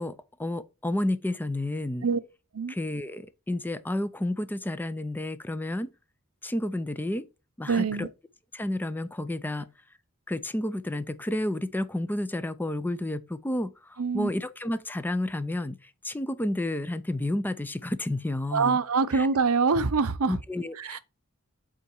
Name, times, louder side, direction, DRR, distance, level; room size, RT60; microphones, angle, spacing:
voice 1, 0.0-2.1 2.7-5.9 6.4-7.3 7.6-8.1 8.5-9.7 10.3-18.8 19.1-19.3 20.3-21.0, left 1 dB, 10° left, 0.4 m, -31 dB
voice 2, 7.7-8.1 14.0-14.3 18.5-20.4 20.8-21.0, right 5 dB, 75° right, 0.6 m, -25 dB
8.2 x 3.8 x 4.7 m
head